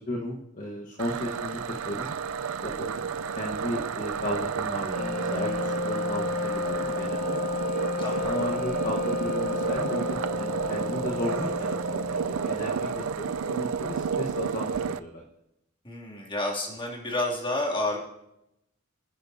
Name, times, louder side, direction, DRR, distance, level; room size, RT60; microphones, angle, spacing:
voice 1, 0.1-2.1 2.6-7.4 7.9-15.2, left 1 dB, 40° left, -2 dB, 1.3 m, -35 dB
Cam-internal, 1.0-15.0, right 6 dB, 80° right, 0.5 m, -31 dB
Wind instrument woodwind instrument, 4.8-12.7, left 4 dB, 65° left, 3.3 m, -32 dB
voice 2, 8.0-8.3 15.8-18.0, left 1 dB, 25° left, -2 dB, 2.6 m, -30 dB
26.5 x 10.0 x 2.7 m, 0.86 s
head